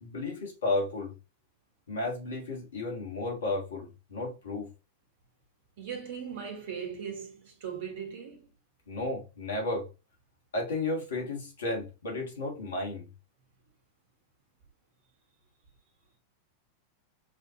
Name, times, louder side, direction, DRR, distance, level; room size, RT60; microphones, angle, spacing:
voice 1, 0.0-1.2 1.9-4.7 8.9-9.9 10.5-13.1, left 2 dB, 65° left, 1.5 m, -33 dB
voice 2, 5.8-8.5, right 7 dB, 55° right, 1.4 m, -39 dB
5.0 x 2.6 x 2.8 m
figure-of-eight pair, 90°, 0 cm